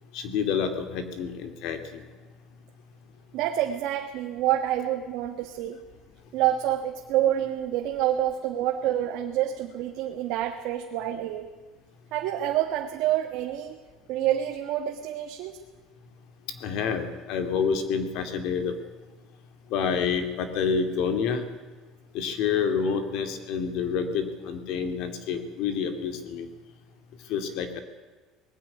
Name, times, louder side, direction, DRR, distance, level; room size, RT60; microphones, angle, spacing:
voice 1, 0.1-2.0 16.6-18.7 19.7-21.4 22.1-26.5 27.3-27.8, left 6 dB, 55° left, 8 dB, 2.4 m, -28 dB
voice 2, 3.3-5.8 6.3-11.5 12.1-13.8 14.1-15.6, right 12 dB, 55° right, 3 dB, 1.5 m, -27 dB
20.0 x 15.5 x 9.9 m, 1.3 s
cardioid pair, 180°, 0 cm